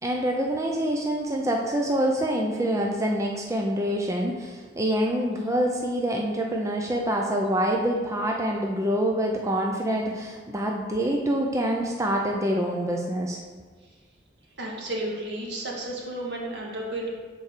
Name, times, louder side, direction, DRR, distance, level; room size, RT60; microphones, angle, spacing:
voice 1, 0.0-13.4, right 1 dB, 15° right, 0 dB, 0.5 m, -26 dB
voice 2, 14.6-17.1, right 1 dB, 65° right, -2 dB, 1.7 m, -32 dB
7.1 x 4.6 x 6.6 m, 1.5 s
head